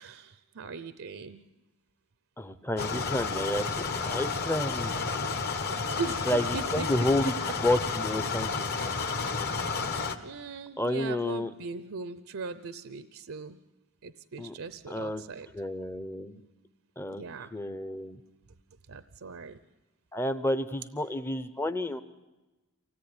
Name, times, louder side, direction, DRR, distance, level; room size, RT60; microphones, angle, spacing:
voice 1, 0.0-1.4 6.0-7.3 8.2-8.3 10.2-13.6 14.0-15.5 17.1-17.5 18.9-19.6, right 4 dB, 65° right, 12 dB, 0.7 m, -39 dB
voice 2, 2.4-5.4 6.3-7.3 7.6-8.7 10.8-11.5 14.4-14.5 14.9-15.2 15.5-16.4 17.0-17.2 17.5-18.2 20.1-22.0, left 1 dB, 10° left, 9 dB, 0.8 m, -30 dB
sound 1, 2.8-10.2, left 4 dB, 50° left, 1.7 m, -31 dB
24.5 x 17.5 x 9.8 m, 1.1 s
head